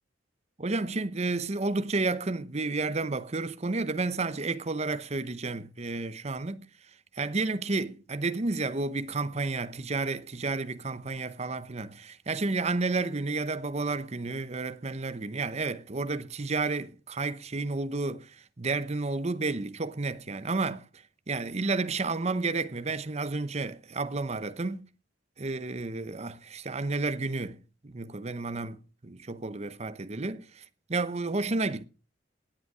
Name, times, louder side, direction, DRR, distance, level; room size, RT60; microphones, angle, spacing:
voice 1, 0.6-6.7 7.2-20.8 21.3-24.9 25.4-30.6 30.9-31.8, right 3 dB, 35° right, 0.8 m, -31 dB
17.5 x 8.1 x 4.9 m
head